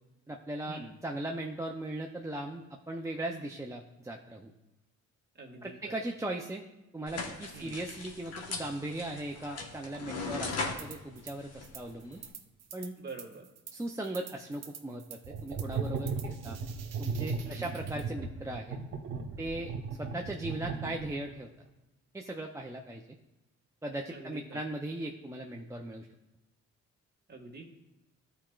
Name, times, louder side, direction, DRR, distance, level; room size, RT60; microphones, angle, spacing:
voice 1, 0.3-4.5 5.6-6.7 6.9-12.2 12.7-12.9 13.7-16.6 17.0-18.8 19.4-19.7 20.0-21.5 22.1-23.2 23.8-26.1, right 1 dB, 10° right, 0 dB, 0.5 m, -38 dB
voice 2, 5.4-6.0 7.5-7.7 13.0-13.4 17.5-17.6 24.1-24.6 27.3-27.6, right 3 dB, 35° right, 0 dB, 1.7 m, -45 dB
sound 1, 7.1-12.3, left 3 dB, 55° left, 1.2 m, -40 dB
sound 2, 10.8-11.4 11.6-18.1, right 8 dB, 60° right, 0.8 m, -49 dB
sound 3, 15.2-21.3, right 5 dB, 80° right, 1.2 m, -36 dB
13.0 x 4.4 x 2.4 m, 0.99 s
cardioid pair, 90°, 30 cm